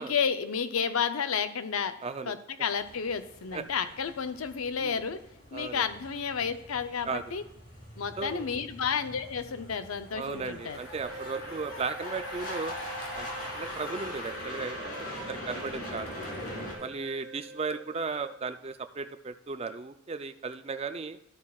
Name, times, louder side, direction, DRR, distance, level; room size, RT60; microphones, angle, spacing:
voice 1, 0.0-1.9 2.3-5.2 5.5-7.4 8.0-10.8, left 6 dB, 85° left, 10 dB, 0.6 m, -31 dB
voice 2, 2.0-2.4 3.5-3.6 4.8-5.0 5.5-5.8 7.1-7.2 8.2-8.5 10.1-12.7 13.1-14.9 15.3-16.2 16.8-21.2, right 4 dB, 30° right, 10 dB, 0.4 m, -36 dB
sound 1, 2.8-16.7, left 1 dB, 40° left, 2.7 m, -42 dB
Mechanisms, 10.7-16.9, left 2 dB, 70° left, 2.2 m, -53 dB
sound 2, 10.8-18.4, right 2 dB, 55° right, 0.9 m, -45 dB
12.5 x 8.5 x 2.4 m, 0.88 s
head